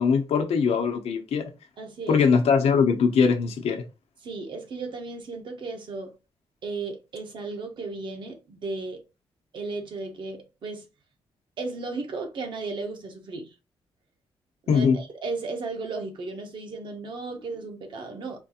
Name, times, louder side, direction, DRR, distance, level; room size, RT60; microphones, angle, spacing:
voice 1, 0.0-1.5 2.1-3.8 14.7-15.0, left 6 dB, 85° left, 0.8 m, -21 dB
voice 2, 1.8-2.2 4.2-6.1 6.6-9.0 9.5-10.9 11.6-13.5 14.6-18.4, right 3 dB, 50° right, 0.9 m, -35 dB
4.4 x 2.5 x 2.8 m
wide cardioid pair, 175°, 10 cm